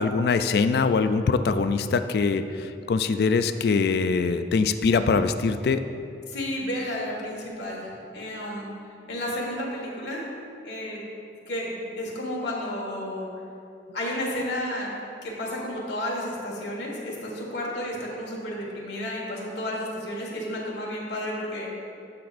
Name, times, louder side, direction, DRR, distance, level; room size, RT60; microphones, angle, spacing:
voice 1, 0.0-5.9, left 4 dB, 60° left, 10 dB, 0.3 m, -23 dB
voice 2, 6.3-8.7 9.1-10.3 10.6-11.0 11.5-13.3 13.9-14.9 15.2-21.7, left 1 dB, 75° left, -3 dB, 1.6 m, -32 dB
13.0 x 6.0 x 2.6 m, 2.5 s
head